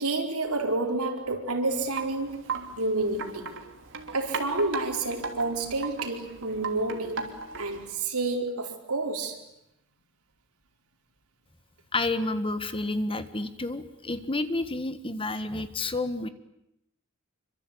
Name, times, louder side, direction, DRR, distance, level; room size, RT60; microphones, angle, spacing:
voice 1, 0.0-2.5 2.8-3.5 4.1-9.4, right 2 dB, 90° right, 4.7 m, -29 dB
Wind chime, 1.7-7.9, right 4 dB, 60° right, 3.1 m, -38 dB
voice 2, 11.9-16.3, left 2 dB, 25° left, 1.6 m, -30 dB
27.0 x 24.5 x 8.7 m
head